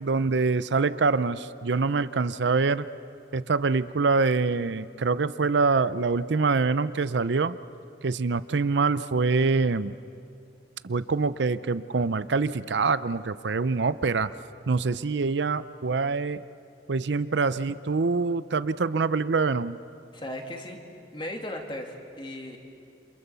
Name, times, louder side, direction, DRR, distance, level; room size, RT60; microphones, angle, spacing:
voice 1, 0.0-2.9 3.3-7.5 8.0-10.0 10.8-14.3 14.7-16.4 16.9-19.8, right 4 dB, 75° right, 14 dB, 0.6 m, -25 dB
voice 2, 20.1-20.8 21.1-22.6, left 1 dB, 25° left, 2 dB, 2.6 m, -36 dB
28.5 x 27.5 x 7.0 m, 2.5 s
head